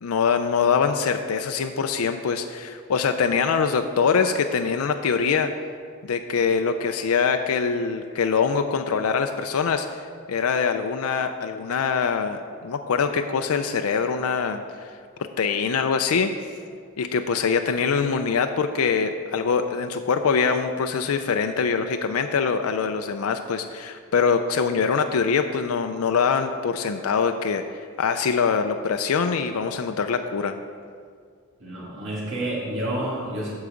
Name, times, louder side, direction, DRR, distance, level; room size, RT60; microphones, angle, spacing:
voice 1, 0.0-5.5 6.0-14.9 15.2-16.3 17.0-30.6, left 5 dB, 85° left, 7 dB, 0.4 m, -24 dB
voice 2, 31.6-33.5, right 1 dB, 60° right, -6 dB, 2.4 m, -29 dB
13.5 x 4.8 x 5.1 m, 2.1 s
head